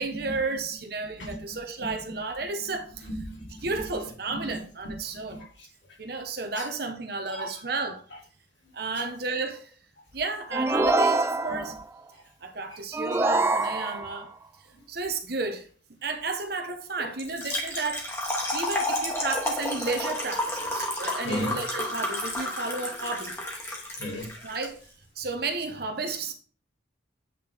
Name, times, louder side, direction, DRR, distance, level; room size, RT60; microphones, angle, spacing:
voice 1, 0.0-3.1 3.6-5.4 6.0-8.0 8.7-9.7 10.1-11.7 12.4-14.3 14.9-15.7 16.0-18.1 18.5-23.4 24.4-24.8 25.2-26.3, right 3 dB, 55° right, 1.1 m, -32 dB
voice 2, 1.2-1.9 3.0-3.7 4.3-4.6 4.8-4.9 5.3-5.5 6.6-6.7 7.3-7.6 11.5-11.6 12.1-12.2 12.7-12.8 13.1-13.2 17.0-17.1 21.2-21.6 23.7-24.3, equal, 70° left, 3.2 m, -36 dB
sound 1, 10.5-11.8 12.9-14.2, right 2 dB, 15° right, 0.3 m, -25 dB
Trickle dribble / Fill (with liquid), 17.2-24.7, left 1 dB, 15° left, 1.5 m, -31 dB
8.5 x 4.4 x 3.6 m
head